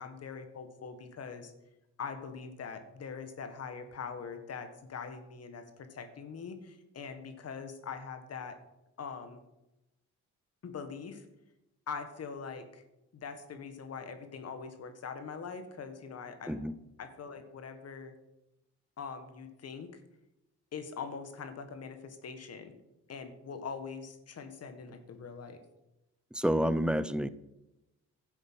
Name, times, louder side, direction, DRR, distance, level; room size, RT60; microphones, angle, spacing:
voice 1, 0.0-1.5 2.0-8.6 9.0-9.4 10.6-11.3 11.9-12.8 13.1-16.7 17.0-18.1 19.0-19.9 20.7-22.7 23.1-25.6, left 5 dB, 55° left, 8 dB, 1.7 m, -42 dB
voice 2, 26.3-27.3, equal, 5° right, 15 dB, 0.6 m, -29 dB
11.5 x 7.7 x 6.2 m, 0.94 s
cardioid pair, 90°, 30 cm